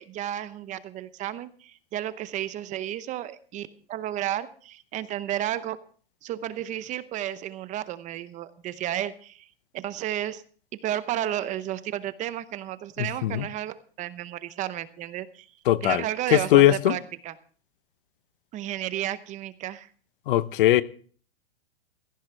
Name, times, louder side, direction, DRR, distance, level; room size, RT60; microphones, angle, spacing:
voice 1, 0.0-5.8 6.2-9.5 9.7-10.4 10.7-15.5 15.8-17.3 18.5-19.9, right 12 dB, 25° right, 0.8 m, -32 dB
voice 2, 13.0-13.5 15.7-16.0 16.3-17.0 20.3-20.8, left 14 dB, 60° left, 1.0 m, -20 dB
17.0 x 15.0 x 3.3 m
hypercardioid pair, 130°, 30 cm